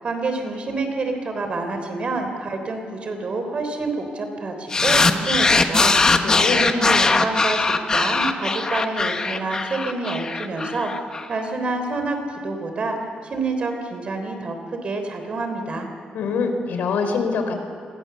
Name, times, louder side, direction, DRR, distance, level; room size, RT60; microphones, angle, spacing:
voice 1, 0.0-6.2 6.5-10.9 11.3-13.0 13.2-14.6 14.8-15.9, right 3 dB, 40° right, 5 dB, 3.5 m, -27 dB
sound 1, 4.7-11.2, left 3 dB, 25° left, 1.4 m, -20 dB
voice 2, 6.2-6.6 16.1-17.5, left 5 dB, 90° left, 6 dB, 4.2 m, -24 dB
29.5 x 22.0 x 7.0 m, 2.5 s
wide cardioid pair, 150°, 3 cm